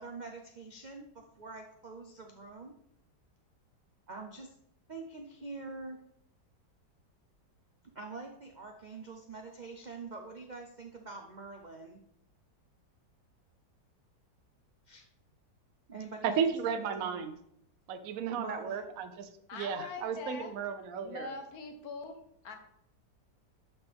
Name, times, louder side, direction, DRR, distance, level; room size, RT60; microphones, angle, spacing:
voice 1, 0.0-2.7 4.1-4.5 4.9-6.0 7.9-12.0 14.9-15.0 15.9-16.4 16.8-17.3 18.4-18.9, right 3 dB, 90° right, 3 dB, 0.4 m, -45 dB
voice 2, 16.2-17.3 17.9-21.3, right 7 dB, 60° right, 8 dB, 1.0 m, -34 dB
voice 3, 19.5-20.5 21.0-22.2 22.4-22.6, left 4 dB, 60° left, 5 dB, 1.4 m, -43 dB
12.0 x 4.5 x 3.5 m, 0.73 s
omnidirectional pair, 1.9 m